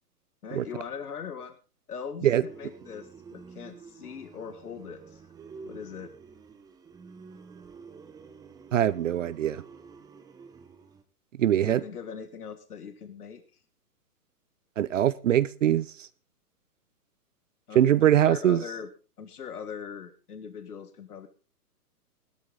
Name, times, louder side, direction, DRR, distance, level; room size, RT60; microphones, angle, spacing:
voice 1, 0.4-1.6 1.9-5.2 5.6-6.1 11.5-13.4 17.7-18.9 19.2-21.3, left 6 dB, 70° left, 1.8 m, -40 dB
sound 1, 2.5-11.0, right 5 dB, 10° right, 0.9 m, -49 dB
voice 2, 8.7-9.6 11.4-11.8 14.8-16.1 17.7-18.6, right 11 dB, 55° right, 0.7 m, -22 dB
17.5 x 12.5 x 3.9 m
figure-of-eight pair, 125°, 47 cm